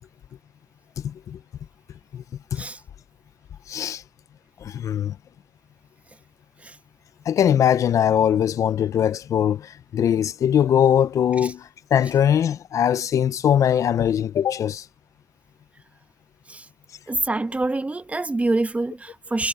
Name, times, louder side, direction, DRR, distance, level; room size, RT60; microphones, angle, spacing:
voice 1, 1.0-1.4 2.1-2.2 2.5-2.6 3.7-4.0 4.6-5.1 7.3-11.6 11.9-14.8, left 9 dB, 75° left, 0.6 m, -21 dB
voice 2, 17.1-19.5, right 2 dB, 25° right, 1.2 m, -25 dB
cardioid pair, 65°, 5 cm